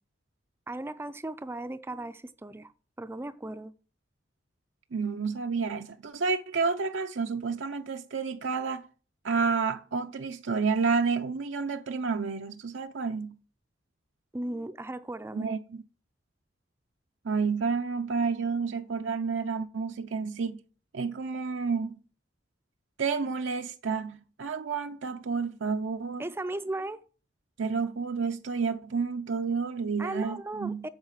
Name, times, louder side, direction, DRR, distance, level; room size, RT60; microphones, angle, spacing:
voice 1, 0.7-2.7 3.0-3.7 14.3-15.6 26.2-27.0 30.0-30.9, right 2 dB, 15° right, 0.4 m, -36 dB
voice 2, 4.9-8.9 9.2-13.4 15.3-15.8 17.2-20.6 20.9-22.0 23.0-26.2 27.6-30.9, right 5 dB, 90° right, 0.6 m, -30 dB
8.7 x 6.6 x 7.2 m
head